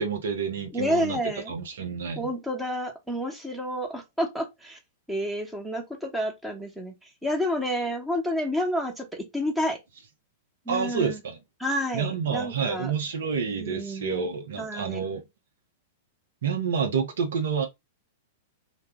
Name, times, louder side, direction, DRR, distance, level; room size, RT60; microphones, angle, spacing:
voice 1, 0.0-1.2 1.5-2.3 10.7-11.4 11.9-15.2 16.4-17.7, right 6 dB, 70° right, 0.6 m, -28 dB
voice 2, 0.7-1.5 2.2-4.8 5.1-6.9 7.2-9.8 10.7-11.2 11.6-12.9 13.4-14.3 14.6-15.0, equal, 5° right, 0.9 m, -29 dB
2.2 x 2.0 x 3.5 m
figure-of-eight pair, 100°, 0 cm